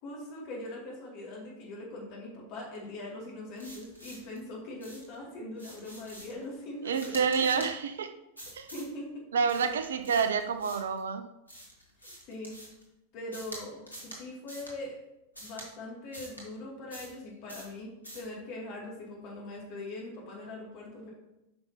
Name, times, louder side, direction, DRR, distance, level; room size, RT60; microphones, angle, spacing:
voice 1, 0.0-7.3 7.5-7.6 8.7-9.3 12.0-12.6 13.1-15.0 15.4-21.1, left 1 dB, 45° left, -3 dB, 2.4 m, -41 dB
sound 1, 3.6-4.4 4.8-5.2 5.6-6.4 6.9-7.7 8.4-8.9 9.5-11.0 11.5-12.8 13.3-13.6 13.9-14.2 14.5-14.7 15.3-15.7 16.1-16.4 16.9-17.2 17.5-17.7 18.0-18.3, equal, 85° left, 1.6 m, -46 dB
voice 2, 6.8-8.1 8.5-8.7 9.3-11.3, right 6 dB, 65° right, 10 dB, 0.5 m, -28 dB
8.6 x 5.6 x 2.9 m, 0.92 s
figure-of-eight pair, 90°, 0 cm